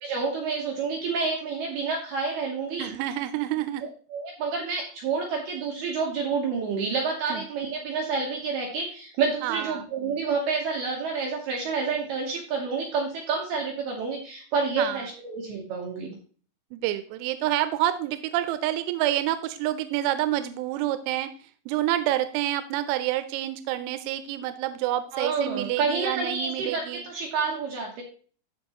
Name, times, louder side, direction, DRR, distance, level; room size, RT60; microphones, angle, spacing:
voice 1, 0.0-2.9 3.8-16.1 25.1-28.0, right 4 dB, 75° right, 0 dB, 2.4 m, -29 dB
voice 2, 2.8-3.9 7.3-7.4 9.4-9.8 14.8-15.1 16.7-27.0, right 13 dB, 90° right, 12 dB, 3.3 m, -28 dB
14.5 x 5.1 x 2.9 m, 0.42 s
omnidirectional pair, 5.9 m